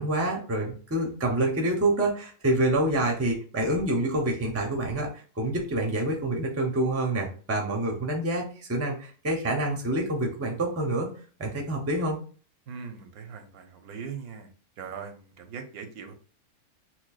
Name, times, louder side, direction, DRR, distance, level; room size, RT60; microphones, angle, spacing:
voice 1, 0.0-5.1 5.4-11.1 11.4-12.2, right 1 dB, 20° right, 1 dB, 0.4 m, -27 dB
voice 2, 12.7-14.5 14.8-16.1, right 6 dB, 90° right, 6 dB, 1.2 m, -40 dB
5.8 x 2.2 x 2.4 m, 0.41 s
omnidirectional pair, 1.5 m